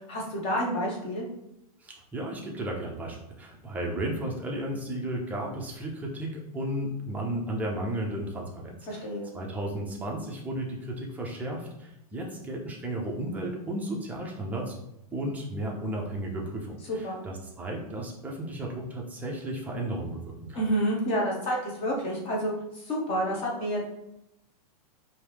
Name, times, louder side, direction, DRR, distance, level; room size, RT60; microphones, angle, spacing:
voice 1, 0.1-1.3 8.9-9.3 16.9-17.2 20.5-22.5 22.8-23.8, equal, 30° left, -2 dB, 1.2 m, -29 dB
voice 2, 1.8-9.1 9.3-14.7 15.1-20.6, right 1 dB, 10° right, -1 dB, 0.6 m, -34 dB
4.7 x 2.8 x 3.5 m, 0.84 s
supercardioid pair, 155°, 20 cm